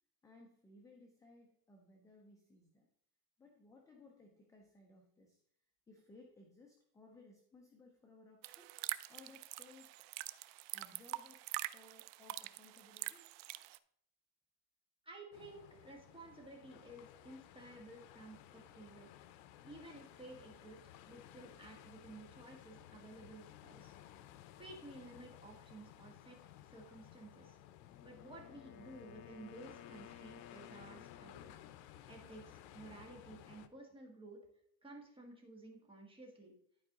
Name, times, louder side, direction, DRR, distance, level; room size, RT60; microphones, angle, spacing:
voice 1, 0.2-2.9 3.4-5.4 5.9-8.7 9.1-9.9 10.7-13.3, left 2 dB, 10° left, 1 dB, 0.3 m, -61 dB
sound 1, 8.4-13.8, right 18 dB, 80° right, 0.6 m, -45 dB
voice 2, 15.0-19.1 19.6-24.3 24.6-26.4 26.7-27.6 28.0-31.5 32.1-34.4 34.8-36.5, right 2 dB, 10° right, 0 dB, 1.5 m, -54 dB
sound 2, 15.3-33.7, left 12 dB, 90° left, 0.8 m, -57 dB
Wind instrument woodwind instrument, 27.8-31.7, left 10 dB, 55° left, 0.8 m, -57 dB
11.5 x 4.7 x 3.6 m, 0.70 s
cardioid pair, 160°, 50 cm